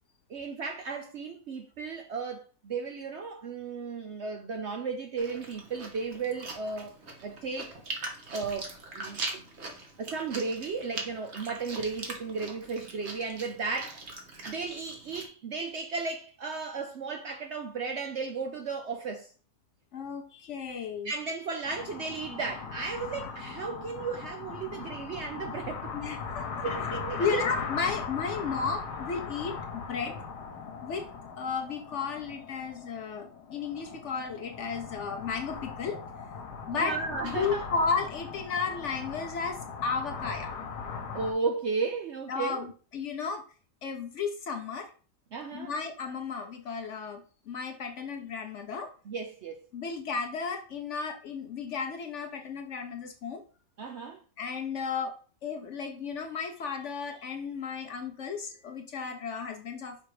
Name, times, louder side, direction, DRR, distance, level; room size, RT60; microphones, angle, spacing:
voice 1, 0.3-6.9 7.2-7.8 8.3-9.4 10.0-14.0 14.4-19.3 21.0-26.0 26.6-27.4 36.7-37.6 41.1-42.7 45.3-45.7 49.1-49.6 53.8-54.2, right 4 dB, 65° right, 0.7 m, -34 dB
Chewing mastication, 5.2-15.3, right 3 dB, 45° right, 1.3 m, -41 dB
voice 2, 19.9-21.1 25.9-26.7 27.2-30.2 30.8-31.1 31.4-36.0 36.7-37.0 37.2-40.5 42.3-43.4 43.8-44.9 45.5-48.9 49.7-53.4 54.4-55.1 55.4-60.0, left 5 dB, 60° left, 0.8 m, -34 dB
sound 1, 21.6-41.3, left 5 dB, 85° left, 1.5 m, -39 dB
5.8 x 3.5 x 4.7 m
omnidirectional pair, 1.7 m